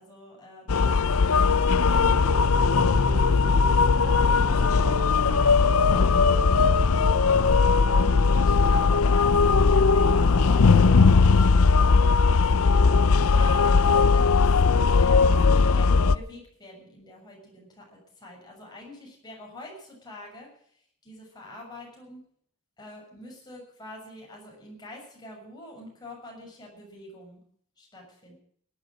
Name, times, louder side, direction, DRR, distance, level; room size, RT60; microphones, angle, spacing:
voice 1, 0.0-2.9 3.3-3.4 3.7-6.1 7.7-12.0 12.7-20.5 21.0-22.2 22.8-27.4 27.8-28.3, left 1 dB, 20° left, -1 dB, 6.7 m, -45 dB
sound 1, 0.7-16.2, left 4 dB, 80° left, 0.6 m, -19 dB
sound 2, 1.9-11.0, left 1 dB, 75° right, 2.9 m, -35 dB
18.0 x 11.0 x 6.4 m, 0.62 s
head